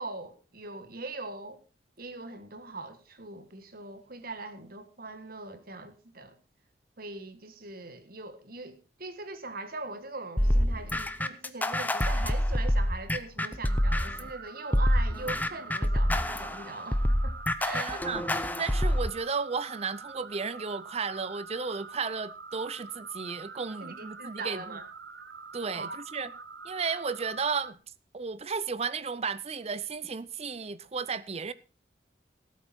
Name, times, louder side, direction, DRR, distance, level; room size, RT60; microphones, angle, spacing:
voice 1, 0.0-1.6 2.0-6.4 7.0-18.1 23.8-24.9 25.7-26.0 26.2-26.3, right 3 dB, 55° right, 1.7 m, -41 dB
sound 1, 10.4-14.3 14.7-19.1, equal, 10° left, 0.7 m, -27 dB
sound 2, 13.7-27.7, right 4 dB, 80° right, 1.2 m, -45 dB
voice 2, 17.7-18.2 18.6-24.8 25.5-26.3 26.6-27.8 28.1-31.5, right 5 dB, 35° right, 0.6 m, -34 dB
18.0 x 8.3 x 4.3 m
head